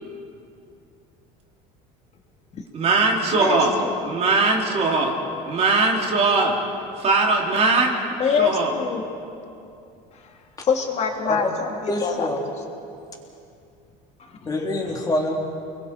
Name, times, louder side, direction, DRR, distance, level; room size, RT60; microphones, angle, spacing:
voice 1, 2.7-3.7 4.0-5.1 5.5-6.5 7.0-7.9 8.4-8.7, right 3 dB, 35° right, 0 dB, 3.2 m, -20 dB
voice 2, 3.4-3.9 8.2-9.0 10.1-10.2 10.6-12.3 14.2-14.4, left 6 dB, 35° left, 2 dB, 2.6 m, -25 dB
voice 3, 11.9-12.4 14.4-15.3, left 1 dB, 20° left, 0 dB, 3.3 m, -25 dB
30.0 x 21.5 x 4.4 m, 2.6 s
cardioid pair, 135°, 18 cm